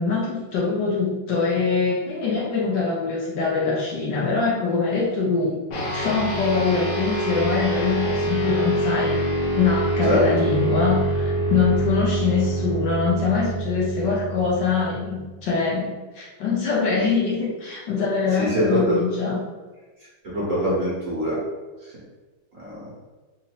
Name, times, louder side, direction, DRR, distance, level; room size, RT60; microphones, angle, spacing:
voice 1, 0.0-5.6 5.9-9.2 9.5-19.4, left 4 dB, 65° left, -5 dB, 1.3 m, -23 dB
sound 1, 5.7-15.4, right 1 dB, 90° left, 1.7 m, -25 dB
voice 2, 18.4-19.0 20.3-21.4 22.6-22.8, equal, 50° right, -8 dB, 1.1 m, -23 dB
4.1 x 2.5 x 2.9 m, 1.3 s
omnidirectional pair, 2.3 m